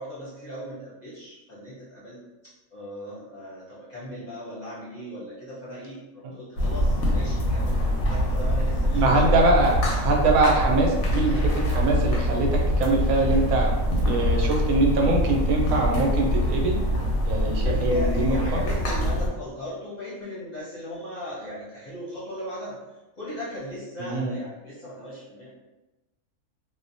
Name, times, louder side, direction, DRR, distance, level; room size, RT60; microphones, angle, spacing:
voice 1, 0.0-2.2 2.7-6.0 6.3-9.4 17.6-22.8 23.2-25.5, left 1 dB, 40° left, -9 dB, 0.7 m, -36 dB
sound 1, 6.6-19.3, equal, 90° left, 1.1 m, -24 dB
voice 2, 8.9-13.7 14.0-16.8 17.3-18.6 24.0-24.3, right 2 dB, 85° right, 0 dB, 1.0 m, -23 dB
2.5 x 2.1 x 2.5 m, 1.0 s
omnidirectional pair, 1.4 m